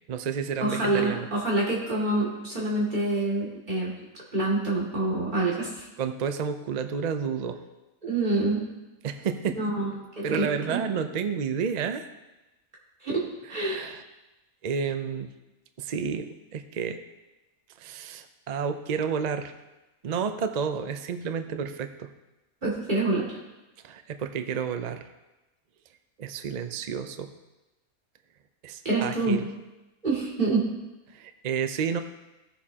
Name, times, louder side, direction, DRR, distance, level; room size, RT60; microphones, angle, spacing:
voice 1, 0.1-1.3 5.5-5.6 6.0-7.6 9.0-9.6 10.2-12.1 13.5-14.0 14.6-15.3 15.8-17.0 17.8-19.5 20.0-22.1 23.8-25.0 26.2-27.3 28.6-29.5 31.1-32.0, right 6 dB, 65° right, 8 dB, 0.4 m, -30 dB
voice 2, 0.6-3.9 4.3-5.9 8.0-8.6 9.6-9.9 10.2-10.5 13.0-13.2 13.5-13.9 22.6-23.4 28.8-29.4 30.0-30.7, right 2 dB, 35° right, -5 dB, 2.5 m, -26 dB
17.0 x 7.1 x 2.9 m, 1.0 s
omnidirectional pair, 1.5 m